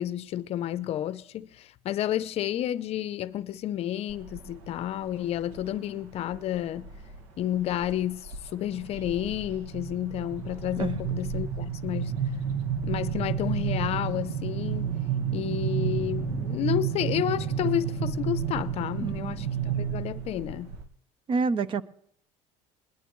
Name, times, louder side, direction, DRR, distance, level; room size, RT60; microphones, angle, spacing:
voice 1, 0.0-6.9 7.4-12.1 12.9-14.9 15.3-20.7, left 12 dB, 45° left, 0.6 m, -31 dB
sound 1, 4.1-4.6 5.1-5.7 6.3-7.2 7.6-7.9 8.3-20.8, right 7 dB, 85° right, 1.7 m, -31 dB
voice 2, 19.0-19.5 21.3-21.8, right 4 dB, 35° right, 0.6 m, -28 dB
21.0 x 11.5 x 3.1 m
cardioid pair, 135°, 15 cm